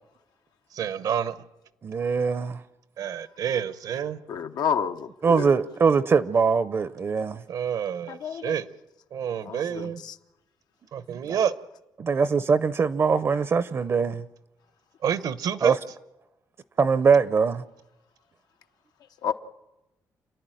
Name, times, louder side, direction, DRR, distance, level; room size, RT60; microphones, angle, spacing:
voice 1, 0.7-1.4 3.0-4.2 7.5-8.7 9.1-10.0 10.9-11.5 15.0-15.8, right 8 dB, 70° right, 0.9 m, -28 dB
voice 2, 1.8-2.6 5.2-7.4 11.3-11.4 12.0-14.2 15.6-15.8 16.8-17.6, right 5 dB, 40° right, 0.6 m, -22 dB
voice 3, 4.3-5.5 8.1-8.5 9.4-10.1 19.2-19.3, left 7 dB, 80° left, 0.8 m, -30 dB
29.0 x 10.5 x 9.1 m
cardioid pair, 125°, 7 cm